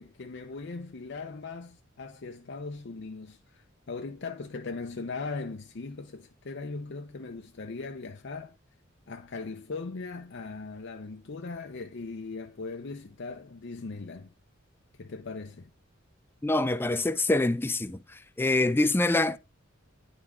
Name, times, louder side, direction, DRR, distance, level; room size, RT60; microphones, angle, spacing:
voice 1, 0.0-8.5 9.1-14.3 15.0-15.7, left 3 dB, 60° left, 0.6 m, -39 dB
voice 2, 16.4-18.0 18.4-19.4, left 2 dB, 10° left, 0.4 m, -25 dB
9.9 x 3.8 x 4.7 m
head